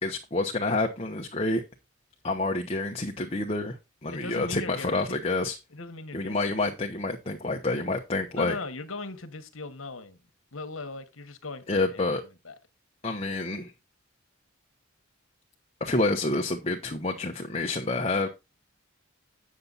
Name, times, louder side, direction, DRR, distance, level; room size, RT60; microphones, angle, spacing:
voice 1, 0.0-1.6 2.2-3.8 4.0-5.6 6.1-8.5 11.7-12.2 13.0-13.7 15.8-18.3, left 2 dB, 30° left, 0.9 m, -28 dB
voice 2, 4.1-5.3 5.7-6.7 8.3-10.2 10.5-12.1 12.4-12.5, left 3 dB, 70° left, 1.3 m, -39 dB
8.7 x 6.9 x 4.0 m
head